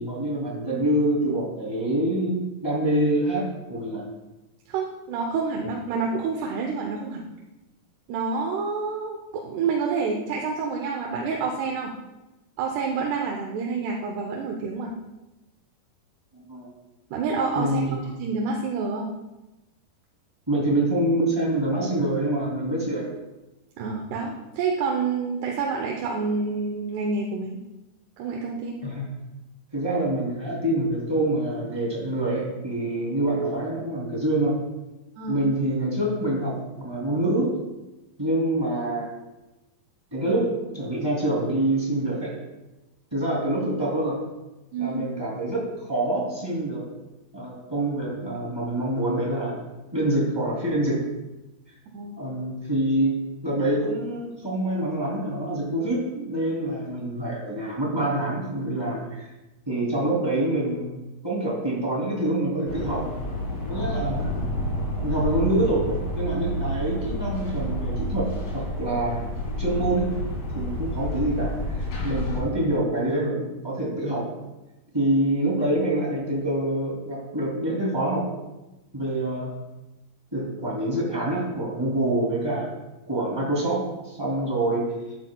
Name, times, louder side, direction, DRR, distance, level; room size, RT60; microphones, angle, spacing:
voice 1, 0.0-3.4 3.7-4.0 16.3-16.7 17.5-18.0 20.5-23.1 28.8-29.0 29.7-34.5 35.3-37.5 38.2-39.1 40.1-42.3 43.1-44.2 44.8-46.8 47.3-49.6 49.9-51.0 52.2-53.1 53.4-59.3 59.7-60.9 61.2-63.0 63.7-64.2 65.0-68.3 68.5-69.2 69.6-70.1 70.5-71.5 72.0-74.4 74.9-78.3 78.9-79.5 80.3-82.7 83.1-84.8, right 1 dB, 10° right, -4 dB, 1.9 m, -26 dB
voice 2, 4.7-7.2 8.1-11.9 12.6-15.0 17.1-17.8 18.2-19.1 23.8-27.6 28.2-28.8 35.2-35.5 44.7-45.0 51.9-52.2, right 4 dB, 90° right, 0 dB, 2.9 m, -28 dB
sound 1, 62.7-72.4, equal, 65° left, 4.7 m, -29 dB
11.5 x 10.0 x 2.3 m, 1.0 s
omnidirectional pair, 4.5 m